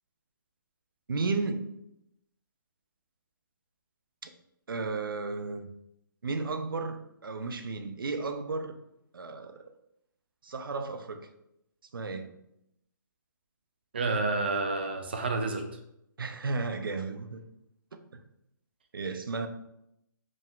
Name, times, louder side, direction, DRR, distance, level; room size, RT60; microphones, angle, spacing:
voice 1, 1.1-1.7 4.2-4.3 4.7-5.7 6.2-8.8 9.1-9.6 10.4-11.3 11.9-12.3 16.2-17.4 18.1-18.2 18.9-19.5, right 3 dB, 80° right, 0.6 m, -33 dB
voice 2, 13.9-15.7, right 3 dB, 30° right, 0.4 m, -29 dB
5.0 x 2.5 x 3.5 m
hypercardioid pair, 175°, 11 cm